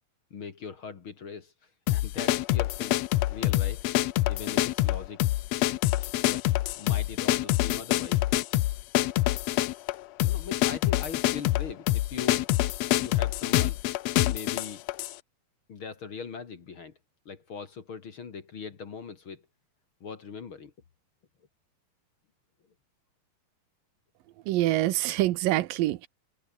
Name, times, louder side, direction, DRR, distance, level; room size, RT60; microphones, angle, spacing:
voice 1, 0.3-1.5 1.9-3.0 3.3-3.8 4.3-5.2 6.2-6.4 6.7-8.2 10.2-12.6 12.9-13.8 14.3-14.8 15.7-17.0 17.3-19.4 20.0-20.7, left 5 dB, 45° left, 2.3 m, -41 dB
sound 1, 1.9-15.2, left 16 dB, 90° left, 1.5 m, -26 dB
voice 2, 24.5-26.1, right 16 dB, 80° right, 2.6 m, -25 dB
omnidirectional pair, 3.9 m